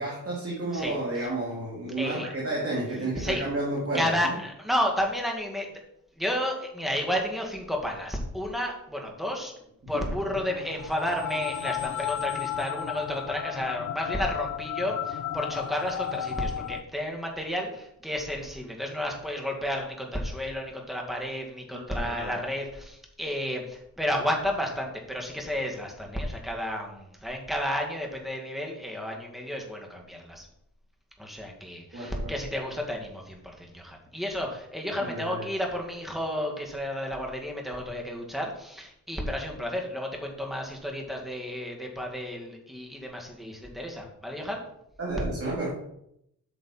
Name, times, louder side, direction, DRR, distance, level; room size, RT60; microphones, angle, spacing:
voice 1, 0.0-4.3 21.7-22.3 31.9-32.3 35.0-35.4 45.0-45.7, right 2 dB, 40° right, -4 dB, 2.6 m, -31 dB
voice 2, 0.7-1.3 2.0-2.3 3.2-3.4 3.9-5.7 6.1-9.5 9.9-30.5 31.2-44.6, equal, ahead, 0 dB, 2.1 m, -32 dB
sound 1, 10.3-16.8, left 9 dB, 55° left, 0.7 m, -33 dB
8.5 x 6.1 x 4.5 m, 0.77 s
cardioid pair, 95°, 35 cm